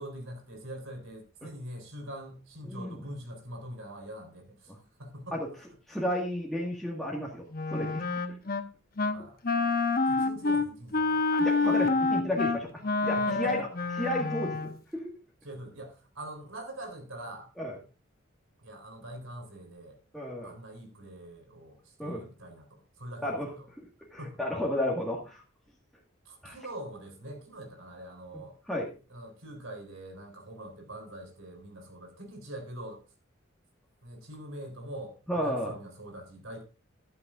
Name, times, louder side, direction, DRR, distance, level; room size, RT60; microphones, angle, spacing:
voice 1, 0.0-4.7 5.0-5.6 9.1-9.4 10.1-11.2 13.2-13.6 15.4-17.5 18.6-20.0 20.4-23.7 24.2-24.4 26.3-28.6 29.1-33.0 34.0-36.6, right 1 dB, 80° right, 4 dB, 3.8 m, -43 dB
voice 2, 5.9-8.0 10.1-10.2 11.3-13.7 14.0-15.1 17.6-17.8 20.1-20.5 22.0-22.2 23.2-23.5 24.1-25.4 26.4-26.6 28.3-28.4 28.7-28.9 35.3-35.7, left 1 dB, ahead, -4 dB, 1.8 m, -32 dB
Wind instrument woodwind instrument, 7.5-8.7 9.0-9.2 9.4-14.7, left 3 dB, 45° left, 1.0 m, -27 dB
14.0 x 12.0 x 2.5 m, 0.33 s
head